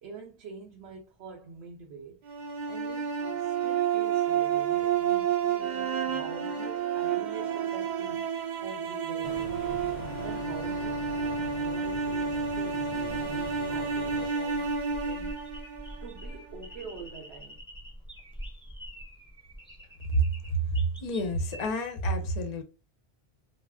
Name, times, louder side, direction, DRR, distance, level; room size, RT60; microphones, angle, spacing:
voice 1, 0.0-2.2 2.7-8.3 8.6-9.5 10.2-15.4 16.0-17.6, right 4 dB, 85° right, 0.9 m, -45 dB
sound 1, 2.3-16.4, right 7 dB, 55° right, 0.6 m, -30 dB
sound 2, 9.2-14.3, left 3 dB, 90° left, 0.8 m, -42 dB
sound 3, 12.8-21.7, equal, 5° left, 0.4 m, -46 dB
voice 2, 20.0-22.6, right 2 dB, 50° left, 0.6 m, -28 dB
2.4 x 2.1 x 3.4 m
omnidirectional pair, 1.1 m